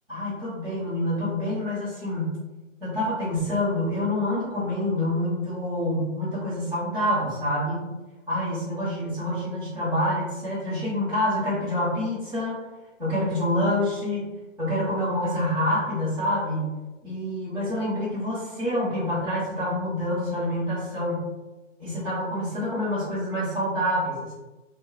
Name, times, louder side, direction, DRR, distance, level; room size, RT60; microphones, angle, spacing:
voice 1, 0.1-2.3 2.8-7.8 8.3-12.6 13.0-14.3 14.6-16.7 17.0-21.3 21.8-24.3, left 1 dB, 20° right, -15 dB, 1.0 m, -27 dB
2.4 x 2.2 x 3.5 m, 1.1 s
hypercardioid pair, 175°, 38 cm